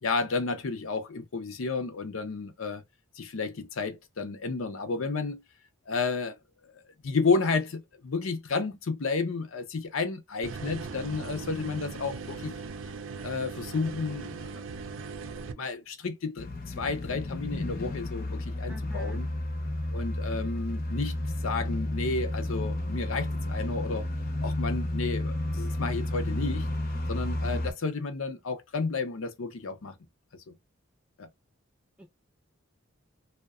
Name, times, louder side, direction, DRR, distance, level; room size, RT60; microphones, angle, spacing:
voice 1, 0.0-2.8 3.1-5.4 5.9-6.4 7.0-12.5 13.2-14.6 15.6-19.3 19.9-21.1 21.4-24.1 24.4-26.7 27.1-30.0 30.5-30.6 31.2-31.3, left 4 dB, 80° left, 0.6 m, -31 dB
sound 1, 10.4-15.5, right 4 dB, 75° right, 0.4 m, -39 dB
sound 2, 16.4-27.7, left 1 dB, 45° left, 0.7 m, -32 dB
voice 2, 18.7-19.2 32.0-32.1, equal, 5° right, 0.4 m, -45 dB
2.7 x 2.1 x 2.3 m
head